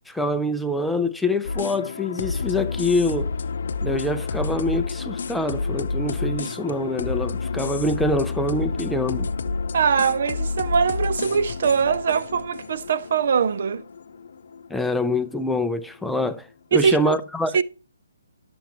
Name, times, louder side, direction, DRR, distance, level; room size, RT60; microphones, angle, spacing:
voice 1, 0.1-3.3 3.8-9.3 14.7-17.6, left 1 dB, ahead, 0.5 m, -25 dB
sound 1, 1.4-15.6, left 4 dB, 60° left, 0.7 m, -30 dB
voice 2, 9.7-13.8 16.7-17.1 17.5-17.6, right 6 dB, 55° right, 0.5 m, -22 dB
11.5 x 7.0 x 3.0 m
hypercardioid pair, 155°, 0 cm